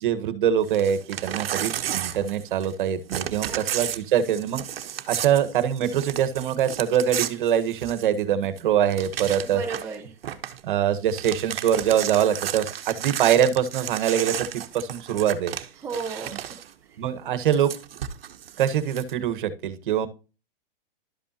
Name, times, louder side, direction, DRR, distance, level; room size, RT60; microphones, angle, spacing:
voice 1, 0.0-4.7 5.1-9.6 10.6-15.5 17.0-17.7 18.6-20.1, right 9 dB, 60° right, 11 dB, 1.5 m, -24 dB
Crumpling crinkling / Tearing, 0.6-2.8 3.1-8.2 8.6-8.7 8.9-9.9 10.2-10.6 11.0-16.7 17.5-19.1, right 10 dB, 80° right, 1.1 m, -33 dB
voice 2, 3.4-3.9 9.4-10.2 15.8-17.0, right 5 dB, 10° right, -1 dB, 0.8 m, -36 dB
12.0 x 5.4 x 2.9 m, 0.31 s
hypercardioid pair, 150°, 29 cm